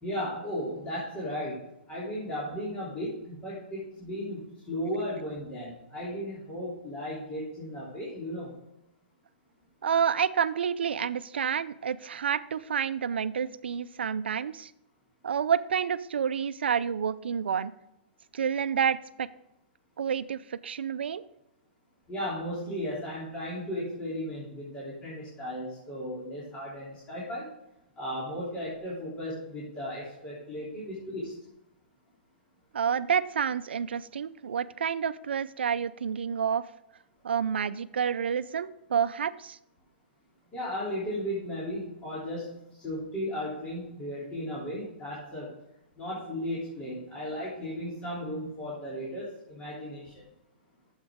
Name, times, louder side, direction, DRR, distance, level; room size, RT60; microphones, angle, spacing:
voice 1, 0.0-8.5 22.1-27.5 28.0-31.3 40.5-45.5 45.9-50.1, equal, 20° left, -8 dB, 3.2 m, -35 dB
voice 2, 9.8-14.7 15.2-17.7 18.3-19.3 20.0-21.2 32.7-36.6 37.2-39.6, right 7 dB, 90° right, 16 dB, 0.5 m, -29 dB
9.8 x 7.2 x 3.6 m, 0.87 s
hypercardioid pair, 140°, 6 cm